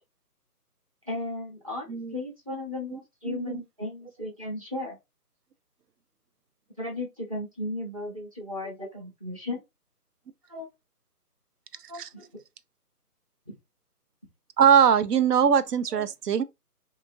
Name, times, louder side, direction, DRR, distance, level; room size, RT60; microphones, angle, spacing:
voice 1, 1.1-5.0 6.8-9.6 10.5-10.7 11.9-12.3 13.5-13.6 15.9-16.1, left 2 dB, 25° right, 0.7 m, -35 dB
voice 2, 3.3-3.6 11.9-12.1 14.6-16.4, right 8 dB, 85° right, 0.6 m, -21 dB
2.8 x 2.6 x 2.6 m
figure-of-eight pair, 165°, 46 cm